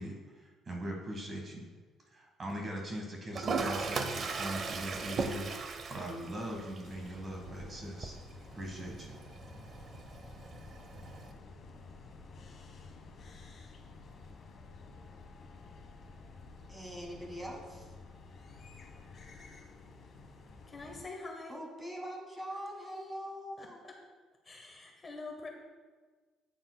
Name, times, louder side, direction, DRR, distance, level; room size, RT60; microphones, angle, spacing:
voice 1, 0.0-1.7 2.1-8.1 8.5-9.1, right 1 dB, 30° right, 1 dB, 1.4 m, -41 dB
Toilet flush, 3.3-11.3, right 4 dB, 45° right, 0.6 m, -39 dB
sound 1, 6.8-21.0, left 3 dB, 45° left, 1.0 m, -51 dB
voice 2, 16.7-17.9 21.5-23.8, equal, 15° right, -1 dB, 2.1 m, -42 dB
voice 3, 20.7-21.6 23.6-23.9 24.4-25.5, left 3 dB, 25° left, 1 dB, 1.1 m, -45 dB
8.8 x 8.7 x 2.2 m, 1.4 s
cardioid pair, 100°, 0 cm